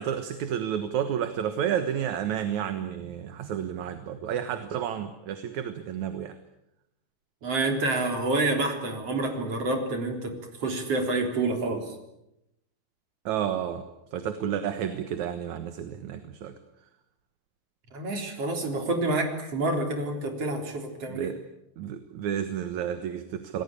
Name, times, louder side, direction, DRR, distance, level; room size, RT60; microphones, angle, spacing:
voice 1, 0.0-6.3 13.3-13.8 14.1-16.5 21.1-21.4 21.8-23.6, right 9 dB, 70° right, 9 dB, 2.7 m, -31 dB
voice 2, 7.4-12.0 17.9-21.3, right 2 dB, 50° right, 4 dB, 4.7 m, -28 dB
28.0 x 20.0 x 8.5 m, 0.85 s
omnidirectional pair, 3.6 m